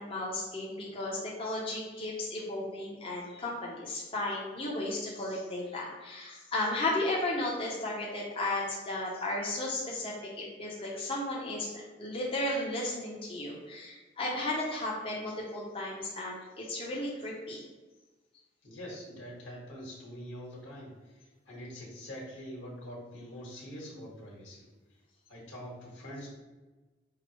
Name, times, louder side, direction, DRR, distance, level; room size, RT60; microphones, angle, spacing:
voice 1, 0.0-17.6, left 1 dB, 30° left, -4 dB, 0.7 m, -34 dB
voice 2, 18.6-24.6 25.3-26.3, equal, 90° left, -5 dB, 1.4 m, -44 dB
5.7 x 2.0 x 2.9 m, 1.2 s
head